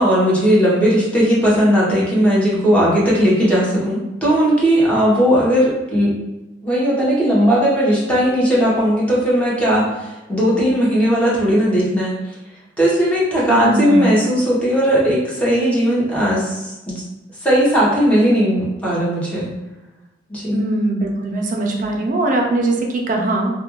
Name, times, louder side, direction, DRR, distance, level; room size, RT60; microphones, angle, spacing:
voice 1, 0.0-6.1 6.6-12.1 12.8-16.9 17.4-19.5 20.3-20.7, equal, 10° left, -7 dB, 0.9 m, -17 dB
voice 2, 13.5-14.2 20.5-23.5, right 2 dB, 45° right, 1 dB, 0.5 m, -20 dB
2.5 x 2.2 x 2.9 m, 1.0 s
head